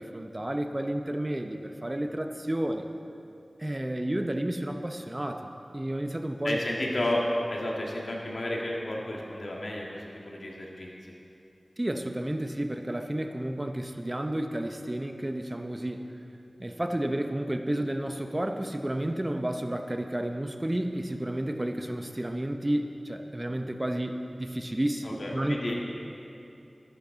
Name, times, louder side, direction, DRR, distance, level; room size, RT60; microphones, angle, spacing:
voice 1, 0.0-2.9 3.6-6.6 11.8-16.0 16.6-25.6, right 1 dB, 25° right, 6 dB, 0.7 m, -31 dB
voice 2, 6.4-11.1 25.0-25.7, left 1 dB, 75° left, -2 dB, 1.9 m, -32 dB
13.0 x 11.0 x 3.9 m, 2.7 s
wide cardioid pair, 65°, 0 cm